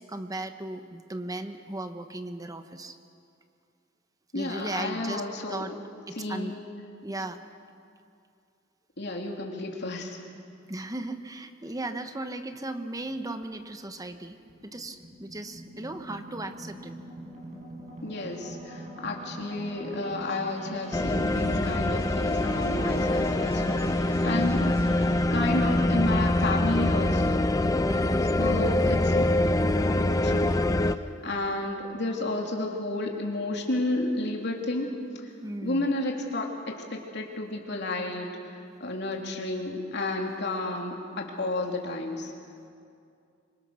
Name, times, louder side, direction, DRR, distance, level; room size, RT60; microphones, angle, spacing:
voice 1, 0.0-3.0 4.3-5.2 5.5-5.7 6.1-6.6 7.0-7.4 10.7-16.9 24.3-24.7 27.9-28.3 35.4-35.9, right 2 dB, 20° right, 8 dB, 1.1 m, -36 dB
voice 2, 4.3-5.8 6.1-6.6 9.0-10.2 18.0-24.7 25.1-27.4 28.4-29.3 30.2-30.6 31.2-34.9 35.6-36.5 36.9-42.3, left 2 dB, 60° left, 0 dB, 3.1 m, -31 dB
sound 1, 13.4-27.6, right 1 dB, 35° right, 5.8 m, -43 dB
sound 2, 20.9-30.9, left 1 dB, 20° left, 0.6 m, -24 dB
25.5 x 24.0 x 6.4 m, 2.5 s
head